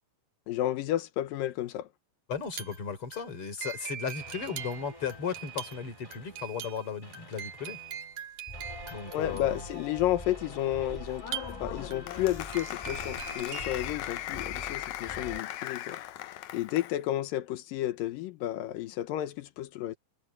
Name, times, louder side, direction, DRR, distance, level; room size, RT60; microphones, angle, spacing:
voice 1, 0.5-1.9 9.1-11.3 11.6-16.0 16.2-20.0, left 13 dB, 90° left, 2.7 m, -32 dB
voice 2, 2.3-7.8 8.9-9.6, left 6 dB, 40° left, 4.4 m, -36 dB
sound 1, 2.4-13.9, right 8 dB, 60° right, 3.9 m, -43 dB
sound 2, 4.2-6.7 7.0-15.4, left 1 dB, 10° left, 2.4 m, -45 dB
Applause, 11.2-17.0, left 14 dB, 75° left, 1.8 m, -38 dB
omnidirectional pair, 3.9 m